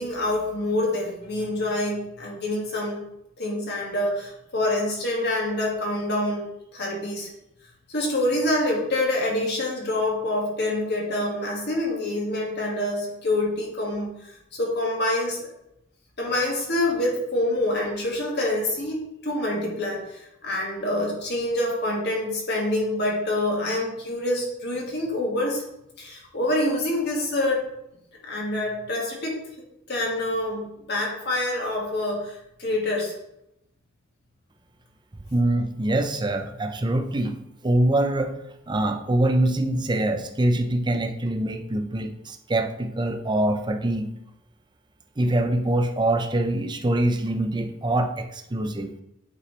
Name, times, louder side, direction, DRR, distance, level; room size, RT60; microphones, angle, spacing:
voice 1, 0.0-3.0 3.4-6.5 6.7-7.3 7.9-15.4 16.2-25.6 26.0-27.6 28.3-29.4 29.9-33.1, left 1 dB, 55° left, -2 dB, 2.0 m, -26 dB
voice 2, 35.3-37.4 37.6-38.3 38.7-44.1 45.2-48.9, right 1 dB, 25° right, 7 dB, 0.6 m, -24 dB
8.5 x 4.7 x 3.3 m, 0.83 s
head